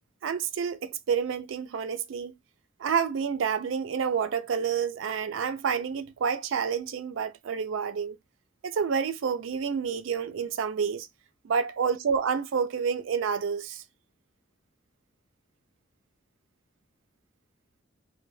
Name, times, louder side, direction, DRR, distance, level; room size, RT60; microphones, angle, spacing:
voice 1, 0.2-2.3 2.8-8.2 8.6-11.1 11.4-13.8, right 6 dB, 75° right, 0.4 m, -29 dB
2.2 x 2.2 x 3.1 m
head